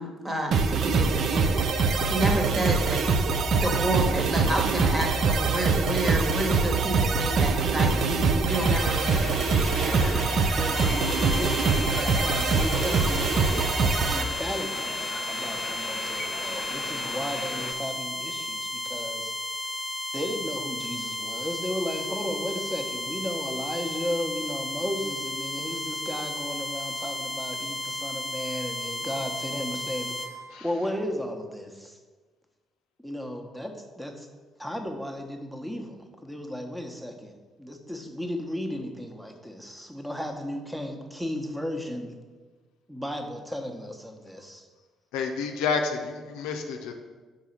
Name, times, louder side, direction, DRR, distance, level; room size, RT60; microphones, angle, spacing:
voice 1, 0.0-3.0 3.6-9.4 9.8-10.2, right 1 dB, 25° right, 2 dB, 1.4 m, -30 dB
sound 1, 0.5-14.2, right 4 dB, 55° right, 0.5 m, -24 dB
sound 2, 8.5-17.7, left 3 dB, 40° left, 0.8 m, -37 dB
voice 2, 10.6-19.3 20.1-32.0 33.0-34.3 34.6-42.1 42.9-44.6, equal, 5° right, 4 dB, 1.0 m, -35 dB
sound 3, 10.8-30.3, left 1 dB, 25° left, 1.2 m, -34 dB
voice 3, 45.1-46.9, left 5 dB, 70° left, 4 dB, 0.5 m, -29 dB
4.7 x 4.1 x 5.7 m, 1.4 s
hypercardioid pair, 45°, 0 cm